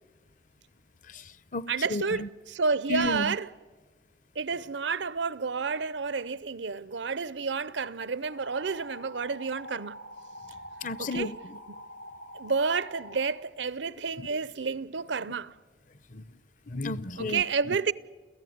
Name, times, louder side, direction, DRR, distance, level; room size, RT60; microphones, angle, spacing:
voice 1, 1.0-2.3 2.9-3.4 10.8-11.6 14.2-14.3 16.1-16.3 16.7-17.8, left 2 dB, 45° left, 0.7 m, -34 dB
voice 2, 1.7-2.2 2.5-3.5 4.4-10.0 11.0-11.3 12.3-15.5 17.2-17.9, right 5 dB, 85° right, 0.7 m, -30 dB
sound 1, 8.2-13.3, equal, 80° left, 3.5 m, -45 dB
29.5 x 14.5 x 9.4 m
head